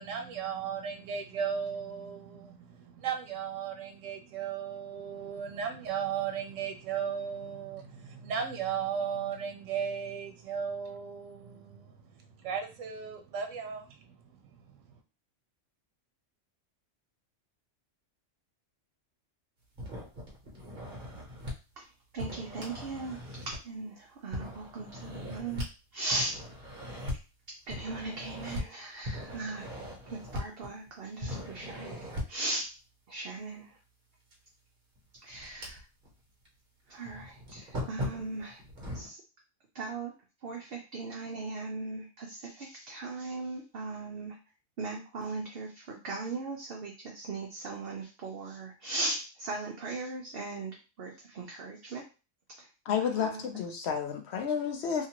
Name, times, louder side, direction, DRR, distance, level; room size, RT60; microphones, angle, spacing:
voice 1, 0.0-15.0, right 7 dB, 85° right, 5 dB, 1.0 m, -36 dB
sound 1, 19.8-21.5 22.2-23.8 24.3-25.7 26.1-27.2 27.7-28.6 29.0-30.9 31.2-32.4 34.3-34.4 35.0-36.1 36.5-36.6 37.0-39.1, left 1 dB, 45° right, 1.1 m, -39 dB
voice 2, 22.1-25.7 25.9-26.4 27.7-29.7 30.1-31.9 32.3-32.7 33.1-33.8 35.2-35.8 36.9-38.6 38.9-39.2 39.7-40.1 40.4-44.4 44.8-52.0 52.6-52.7 53.0-53.4, right 3 dB, 60° right, 0 dB, 0.7 m, -38 dB
voice 3, 52.9-55.1, left 7 dB, 65° left, 5 dB, 0.8 m, -31 dB
2.8 x 2.5 x 2.9 m, 0.31 s
omnidirectional pair, 1.3 m